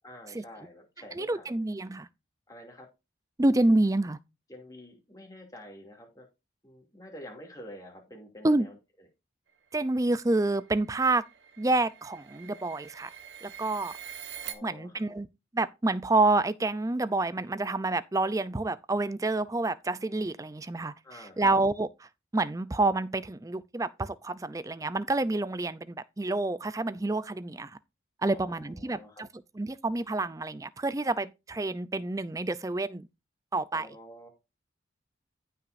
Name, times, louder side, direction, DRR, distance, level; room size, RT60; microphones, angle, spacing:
voice 1, 0.0-1.5 2.5-2.9 4.5-6.3 6.6-8.8 14.4-15.2 21.0-21.5 28.2-29.2 33.7-34.3, left 1 dB, 20° left, 2.6 m, -48 dB
voice 2, 1.1-2.1 3.4-4.2 8.4-8.7 9.7-11.2 11.6-13.1 13.4-13.9 14.6-15.3 15.5-21.9 22.3-27.8 28.2-29.3 29.6-33.1 33.5-33.9, right 2 dB, 20° right, 0.4 m, -28 dB
sound 1, 9.9-14.5, right 9 dB, 75° right, 1.2 m, -45 dB
15.0 x 5.8 x 2.6 m
head